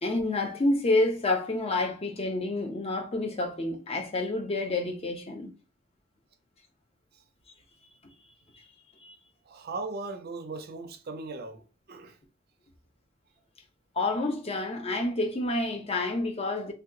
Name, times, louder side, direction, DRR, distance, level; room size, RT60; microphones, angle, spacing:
voice 1, 0.0-5.5 9.0-9.1 14.0-16.7, left 2 dB, 30° left, 0.6 m, -28 dB
voice 2, 9.5-12.2, right 3 dB, 50° right, 0.5 m, -38 dB
2.8 x 2.3 x 3.6 m
head